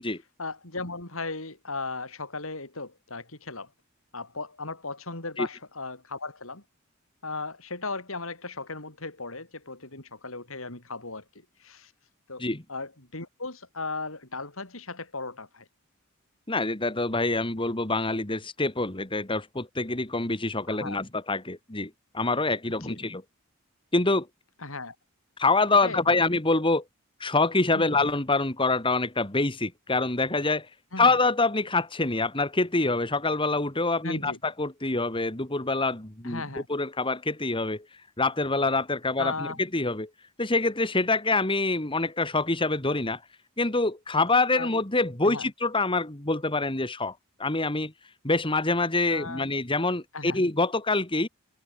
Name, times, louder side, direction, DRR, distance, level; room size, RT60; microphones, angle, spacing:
voice 1, 0.4-3.7 4.1-6.6 7.2-11.2 11.6-11.9 12.3-15.7 20.7-21.0 22.7-22.9 24.6-24.9 25.8-26.0 27.7-28.0 30.9-31.1 34.0-34.4 36.2-36.7 39.2-39.6 44.5-44.7 45.2-45.5 49.1-49.5 50.1-50.4, left 3 dB, 70° left, 5.0 m, -36 dB
voice 2, 16.5-23.2 23.9-24.3 25.4-26.8 27.2-30.7 31.0-36.4 36.7-37.8 38.2-40.1 40.4-43.2 43.6-47.9 48.2-51.3, left 3 dB, 25° left, 2.4 m, -26 dB
head